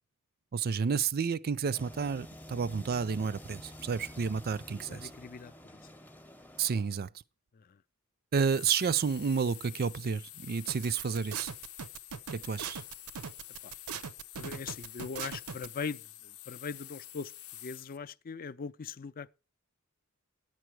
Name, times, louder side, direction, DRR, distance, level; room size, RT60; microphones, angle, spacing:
voice 1, 0.5-5.1 6.6-7.1 8.3-11.5 12.3-12.8, right 6 dB, 45° right, 0.5 m, -30 dB
sound 1, 1.6-7.0, left 1 dB, 10° left, 0.7 m, -49 dB
voice 2, 4.9-5.9 7.5-7.8 13.6-13.7 14.4-17.3 17.6-19.3, left 5 dB, 40° left, 0.5 m, -41 dB
sound 2, 8.4-18.0, left 13 dB, 90° left, 0.8 m, -49 dB
sound 3, 10.7-15.7, right 7 dB, 85° right, 0.7 m, -40 dB
11.0 x 9.0 x 4.6 m
head